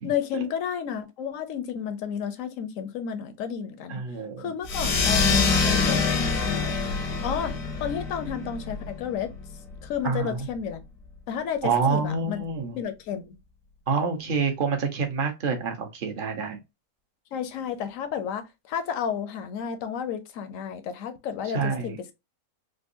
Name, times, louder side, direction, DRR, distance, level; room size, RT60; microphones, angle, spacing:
voice 1, 0.0-4.0 4.4-6.8 7.2-9.3 9.8-10.8 11.3-12.4 12.7-13.4 17.3-21.9, left 8 dB, 70° left, 0.9 m, -32 dB
voice 2, 3.9-4.5 10.0-10.4 11.6-12.8 13.9-16.6 21.5-22.0, right 5 dB, 40° right, 0.9 m, -27 dB
sound 1, 4.6-9.7, left 4 dB, 85° left, 1.3 m, -25 dB
3.6 x 2.5 x 2.6 m
omnidirectional pair, 1.6 m